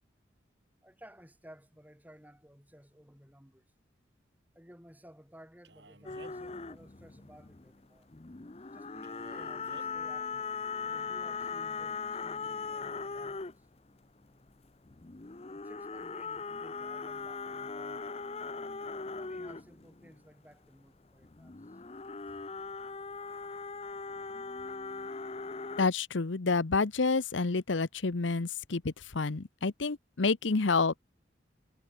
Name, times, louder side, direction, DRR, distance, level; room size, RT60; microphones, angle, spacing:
voice 1, 0.8-3.7 4.5-8.1 8.7-10.5 10.8-13.7 15.5-18.4 19.2-21.8 22.3-22.4, equal, 10° right, 7.4 m, -56 dB
Male speech man speaking, 5.6-6.5 9.0-9.9, right 2 dB, 70° right, 5.2 m, -53 dB
sound 1, 6.0-7.8 8.1-13.8 14.5-20.2 21.2-25.9, left 4 dB, 30° left, 0.7 m, -40 dB
voice 2, 25.8-30.9, left 4 dB, 85° left, 0.9 m, -29 dB
head